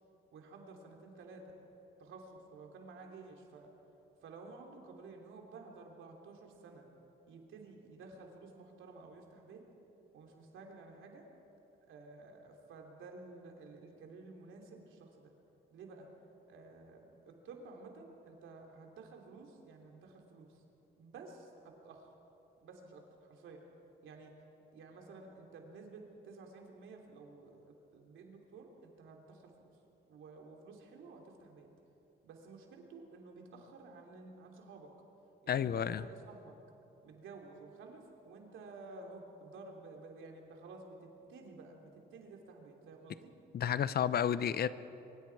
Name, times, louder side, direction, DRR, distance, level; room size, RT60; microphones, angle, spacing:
voice 1, 0.3-1.5 2.0-3.7 4.2-6.9 7.3-9.6 10.1-11.3 11.9-15.3 15.7-16.1 16.5-20.6 21.0-22.1 22.6-23.6 24.0-24.3 24.7-29.5 30.1-31.7 32.2-34.9 35.4-36.5 37.0-43.3, right 3 dB, 80° right, 1 dB, 3.2 m, -52 dB
voice 2, 35.5-36.0 43.5-44.7, left 9 dB, 50° left, 15 dB, 0.7 m, -31 dB
24.0 x 24.0 x 4.8 m, 3.0 s
cardioid pair, 90°, 20 cm